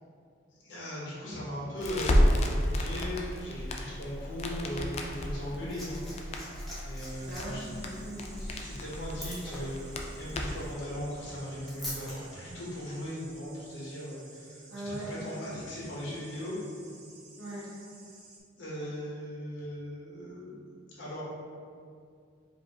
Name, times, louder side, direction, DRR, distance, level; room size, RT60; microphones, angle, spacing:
voice 1, 0.5-6.0 6.8-7.7 8.4-16.6 18.6-20.6 20.9-21.2, equal, 65° left, -7 dB, 1.1 m, -38 dB
Crackle, 1.8-10.7, equal, 35° left, 0.3 m, -32 dB
Liquid, 5.6-12.2 13.2-13.3, equal, ahead, 0.9 m, -45 dB
sound 1, 7.1-18.4, right 3 dB, 40° right, 0.6 m, -54 dB
voice 2, 7.2-8.7 14.7-15.2 17.4-17.7, right 1 dB, 85° right, -6 dB, 1.1 m, -41 dB
5.0 x 2.8 x 2.8 m, 2.3 s
head